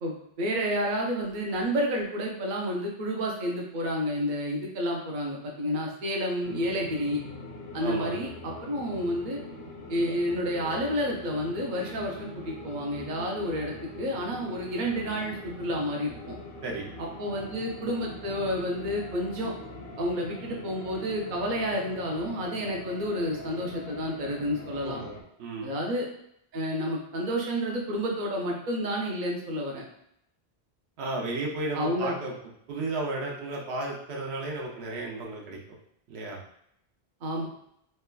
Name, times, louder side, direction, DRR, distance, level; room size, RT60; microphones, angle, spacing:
voice 1, 0.0-7.2 7.7-9.4 9.9-16.3 17.2-19.5 20.0-25.0 25.6-26.1 26.5-29.8 31.7-32.1 37.2-37.5, equal, 55° right, -1 dB, 0.7 m, -30 dB
sound 1, 6.4-25.2, left 2 dB, 60° left, 0.7 m, -42 dB
voice 2, 7.8-8.2 16.6-16.9 24.8-25.1 25.4-25.7 31.0-32.3 32.7-35.8 36.1-36.4, right 2 dB, 85° right, -2 dB, 0.9 m, -33 dB
3.1 x 2.2 x 2.2 m, 0.74 s
omnidirectional pair, 1.0 m